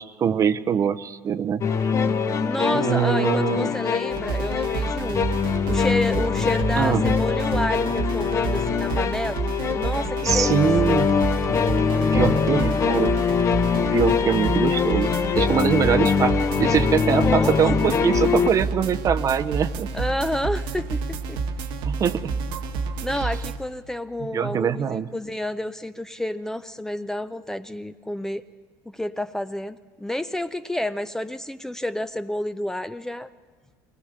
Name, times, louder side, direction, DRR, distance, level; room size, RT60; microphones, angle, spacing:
voice 1, 0.0-1.9 2.7-3.7 6.8-7.1 10.2-11.1 12.1-13.1 13.9-19.9 21.9-22.3 23.2-23.3 24.2-25.1, right 8 dB, 35° right, 12 dB, 0.7 m, -23 dB
sound 1, 1.6-18.5, left 6 dB, 30° left, 0.9 m, -23 dB
voice 2, 2.4-5.3 5.7-9.4 9.7-10.7 17.0-17.6 19.9-21.4 23.0-28.5 28.9-33.3, left 1 dB, 5° left, 11 dB, 0.5 m, -30 dB
sound 2, 4.1-23.6, right 4 dB, 65° right, 1.3 m, -29 dB
22.5 x 19.0 x 6.7 m, 1.4 s
supercardioid pair, 110°, 9 cm